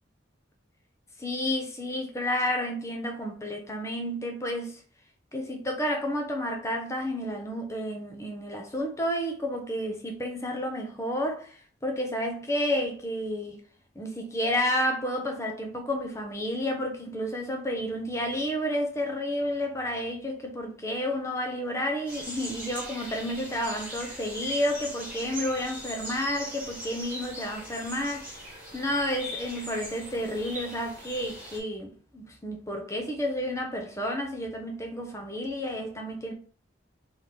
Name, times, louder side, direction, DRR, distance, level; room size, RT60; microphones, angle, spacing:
voice 1, 1.2-4.8 5.3-13.6 14.0-36.3, left 1 dB, 15° left, 0.8 m, -31 dB
sound 1, 22.1-31.6, equal, 10° right, 1.7 m, -40 dB
3.5 x 3.1 x 4.0 m
head